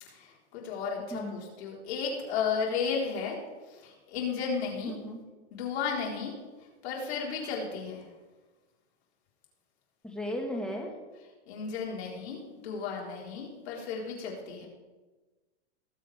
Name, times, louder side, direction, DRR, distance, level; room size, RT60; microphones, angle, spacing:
voice 1, 0.1-3.4 3.7-4.9 5.5-6.3 6.8-8.0 11.5-14.7, left 6 dB, 65° left, -2 dB, 4.2 m, -34 dB
voice 2, 1.1-1.4 4.8-5.2 10.0-10.9, equal, ahead, 1 dB, 1.6 m, -35 dB
20.0 x 7.5 x 3.5 m, 1.3 s
supercardioid pair, 150°, 35 cm